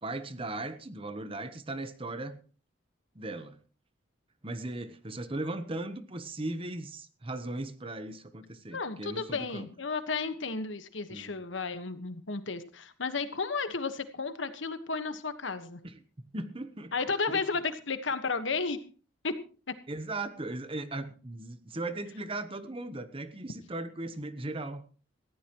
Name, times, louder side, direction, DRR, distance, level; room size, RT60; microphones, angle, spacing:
voice 1, 0.0-2.4 3.1-3.6 4.4-9.7 11.1-11.4 15.8-16.9 17.3-17.4 19.9-24.8, right 2 dB, 30° right, 11 dB, 1.0 m, -38 dB
voice 2, 8.7-15.8 16.9-18.8 19.2-19.3, left 4 dB, 75° left, 10 dB, 1.4 m, -33 dB
19.0 x 15.0 x 3.1 m, 0.38 s
head